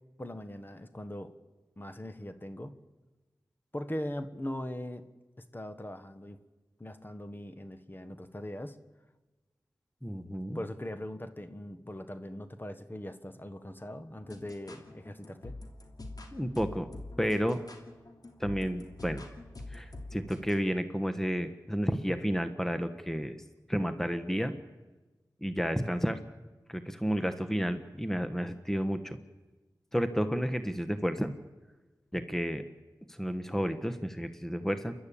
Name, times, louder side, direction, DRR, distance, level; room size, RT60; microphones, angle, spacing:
voice 1, 0.2-1.3 1.8-2.7 3.7-5.0 5.5-6.4 6.8-8.8 10.5-15.5, left 1 dB, 25° left, 10 dB, 1.5 m, -40 dB
voice 2, 10.0-10.6 16.3-16.9 17.2-17.6 18.4-19.2 19.7-23.4 23.7-24.5 25.4-26.2 26.7-29.2 29.9-31.3 32.1-32.6 33.1-34.9, equal, 5° left, 9 dB, 1.4 m, -31 dB
sound 1, 14.2-20.6, left 2 dB, 55° left, 2.9 m, -46 dB
28.5 x 12.0 x 8.7 m, 1.2 s
cardioid pair, 45°, 8 cm